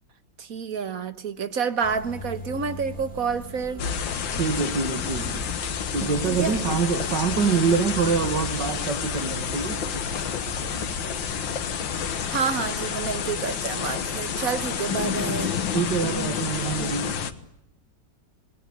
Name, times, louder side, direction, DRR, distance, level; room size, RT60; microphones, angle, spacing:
voice 1, 0.4-3.8 6.4-6.5 12.3-15.5, right 6 dB, 50° right, 1.7 m, -28 dB
sound 1, 1.8-12.4, equal, 5° left, 7.8 m, -39 dB
sound 2, 3.8-17.3, left 7 dB, 85° left, 2.1 m, -29 dB
voice 2, 4.3-5.5 5.9-9.8 15.7-17.2, right 5 dB, 65° right, 2.4 m, -25 dB
28.0 x 20.5 x 9.7 m
omnidirectional pair, 2.0 m